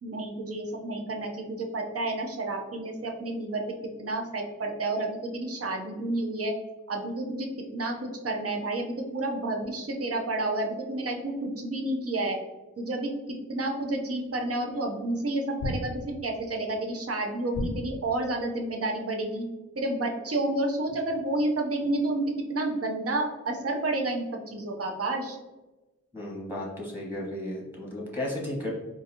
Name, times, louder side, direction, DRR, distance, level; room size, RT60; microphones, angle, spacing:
voice 1, 0.0-3.6 4.0-6.5 6.9-12.4 12.8-13.1 13.5-19.4 19.8-22.2 22.5-25.4, right 2 dB, 50° right, 2 dB, 0.6 m, -30 dB
sound 1, 14.3-14.4 15.6-16.4 17.5-18.3, left 1 dB, 80° left, 0.6 m, -34 dB
voice 2, 26.1-28.7, left 1 dB, 5° right, -5 dB, 1.1 m, -34 dB
3.8 x 2.6 x 2.7 m, 1.1 s
wide cardioid pair, 95°, 31 cm